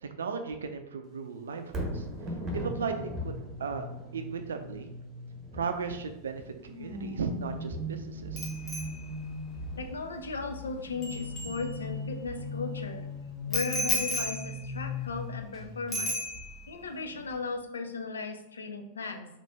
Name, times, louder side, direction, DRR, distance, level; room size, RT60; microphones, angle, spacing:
voice 1, 0.0-2.0 2.5-3.3 3.6-3.9 4.1-4.9 5.5-8.5, right 5 dB, 65° right, 7 dB, 0.4 m, -36 dB
Thunder, 1.6-15.8 16.3-16.4, equal, 20° right, 0.9 m, -42 dB
sound 1, 2.3-5.9 6.5-9.8 10.8-16.0 16.3-16.6, left 2 dB, ahead, 1.2 m, -40 dB
Bicycle bell, 8.4-12.2 13.5-15.6 15.9-16.8 17.1-17.3, left 1 dB, 25° left, 0.9 m, -35 dB
voice 2, 9.8-13.1 13.5-16.2 16.7-19.3, left 4 dB, 70° left, 7 dB, 0.4 m, -36 dB
4.1 x 2.5 x 3.4 m, 0.89 s
figure-of-eight pair, 90°, 0 cm